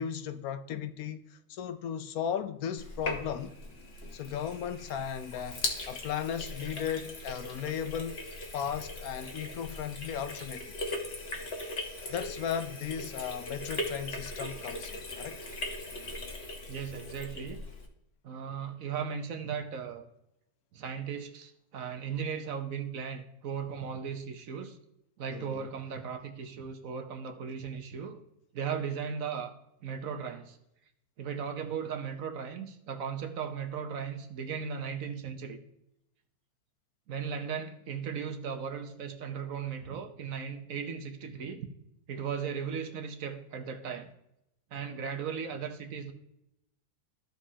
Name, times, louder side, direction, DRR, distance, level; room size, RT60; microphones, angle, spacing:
voice 1, 0.0-3.6 4.1-8.2 8.5-10.8 12.1-15.4 25.3-25.7, left 8 dB, 70° left, 1.0 m, -36 dB
Sink (filling or washing), 2.8-17.9, left 2 dB, 40° left, 1.5 m, -39 dB
voice 2, 16.7-17.6 18.2-20.1 20.7-24.8 25.2-28.2 28.5-29.5 29.8-30.6 31.2-35.6 37.1-41.7 42.1-44.1 44.7-46.1, right 7 dB, 60° right, 1.2 m, -37 dB
14.5 x 5.2 x 2.8 m
omnidirectional pair, 1.7 m